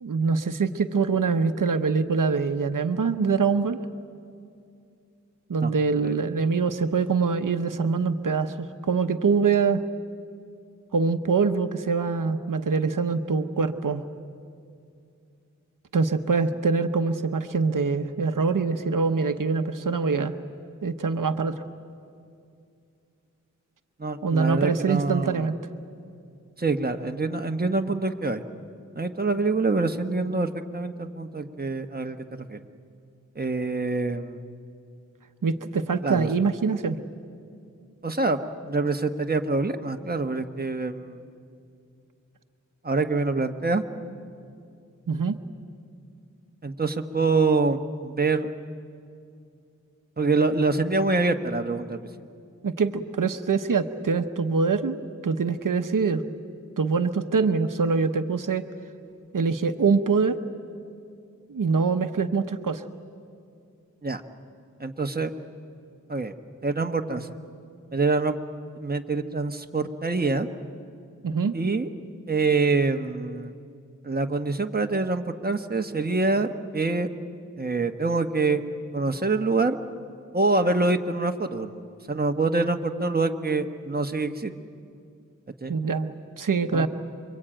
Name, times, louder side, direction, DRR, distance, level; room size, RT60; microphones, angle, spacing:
voice 1, 0.0-3.8 5.5-9.8 10.9-14.0 15.9-20.3 20.8-21.5 24.2-25.5 35.4-37.0 45.1-45.4 52.6-55.0 55.2-56.2 56.8-58.6 59.3-60.4 61.5-62.8 71.2-71.6 85.7-86.9, right 5 dB, 90° right, 9 dB, 0.9 m, -24 dB
voice 2, 24.0-25.5 26.6-28.4 28.9-32.6 33.3-34.4 36.0-36.3 38.0-38.4 38.7-41.2 42.8-43.8 46.6-48.5 50.2-52.0 64.0-64.2 64.8-65.3 66.1-66.3 66.6-67.3 67.9-68.4 68.8-70.5 71.5-71.9 72.3-73.5 74.0-76.5 76.7-77.1 77.6-78.6 78.9-79.8 80.3-81.7 82.1-84.5 85.6-85.8 86.7-86.9, right 3 dB, 30° right, 5 dB, 1.2 m, -25 dB
28.0 x 23.5 x 9.0 m, 2.4 s
wide cardioid pair, 75°, 31 cm